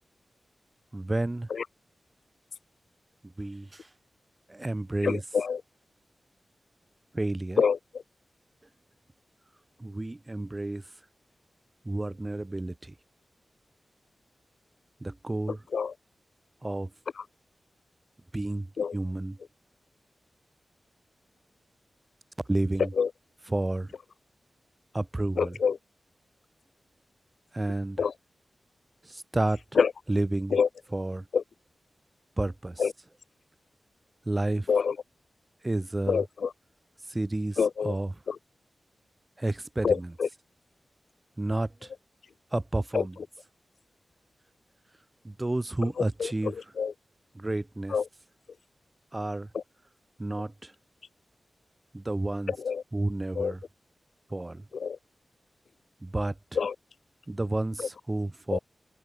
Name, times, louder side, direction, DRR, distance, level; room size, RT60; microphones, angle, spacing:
voice 1, 0.9-1.5 3.4-3.7 4.5-5.2 7.1-7.6 9.8-10.8 11.9-12.9 15.0-15.6 16.6-16.9 18.3-18.7 18.9-19.4 22.5-22.9 23.5-23.9 24.9-25.6 27.5-28.0 29.1-29.6 30.1-30.5 30.9-31.2 32.4-32.8 34.3-34.7 35.6-36.2 37.1-37.6 37.8-38.1 39.4-40.1 41.4-41.7 42.5-43.2 45.2-46.5 47.4-47.9 49.1-49.5 50.2-50.7 51.9-52.5 52.9-53.6 54.3-54.6 56.0-56.3 57.3-58.6, right 2 dB, 20° right, 0.5 m, -30 dB
voice 2, 5.0-5.6 7.6-7.8 15.5-15.9 17.2-17.3 18.8-19.0 22.8-23.1 25.4-25.8 28.0-28.1 29.7-29.9 30.5-30.7 31.3-31.4 32.8-32.9 34.7-35.0 36.1-36.5 37.6-38.0 38.3-38.4 39.8-40.3 42.9-43.1 45.8-46.9 47.9-48.1 49.5-49.6 52.5-52.8 53.3-53.5 54.7-55.0 56.5-56.7 57.8-57.9 58.5-58.6, left 6 dB, 80° left, 1.3 m, -27 dB
open air
wide cardioid pair, 140°, 0 cm